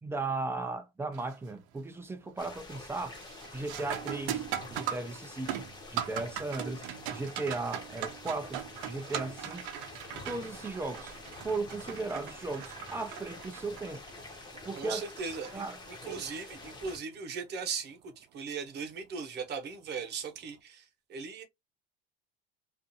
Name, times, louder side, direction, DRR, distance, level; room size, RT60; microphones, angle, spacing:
voice 1, 0.0-3.2 3.5-4.4 4.7-5.6 5.9-9.6 10.2-11.1 11.4-14.0 14.7-15.0 15.5-15.8 16.0-16.4, right 3 dB, 10° right, 0.3 m, -36 dB
sound 1, 1.1-1.5 1.9-2.4 2.7-16.2 18.7-18.8 19.6-19.9, right 10 dB, 70° right, 0.6 m, -40 dB
sound 2, 2.4-17.0, left 2 dB, 15° left, 0.7 m, -47 dB
voice 2, 14.8-21.4, right 5 dB, 35° right, 0.9 m, -39 dB
2.5 x 2.4 x 2.6 m
cardioid pair, 140°, 30 cm